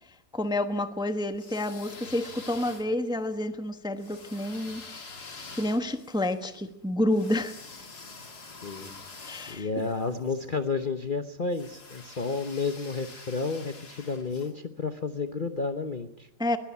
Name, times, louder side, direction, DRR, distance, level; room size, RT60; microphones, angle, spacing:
voice 1, 0.3-4.8 5.6-7.5 8.8-9.9 16.4-16.6, left 1 dB, 5° right, 9 dB, 0.9 m, -29 dB
sound 1, 1.3-3.2 4.0-10.4 11.5-14.5, left 4 dB, 65° left, 3.2 m, -46 dB
voice 2, 8.6-8.9 9.5-16.3, left 4 dB, 35° left, 8 dB, 0.9 m, -31 dB
22.0 x 16.5 x 8.4 m, 0.81 s
omnidirectional pair, 1.8 m